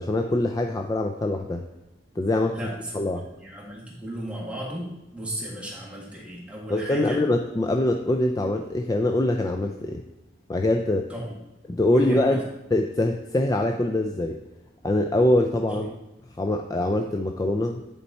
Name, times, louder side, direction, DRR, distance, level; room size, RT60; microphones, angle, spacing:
voice 1, 0.0-1.6 2.2-2.6 2.9-3.2 6.7-10.0 10.5-11.1 11.7-12.4 12.7-14.4 14.8-15.9 16.4-17.8, left 1 dB, 20° left, 4 dB, 0.4 m, -23 dB
voice 2, 2.5-7.2 11.1-11.4 11.9-12.4 15.7-15.9, right 1 dB, 5° right, -4 dB, 1.8 m, -35 dB
10.0 x 4.4 x 4.2 m, 0.95 s
head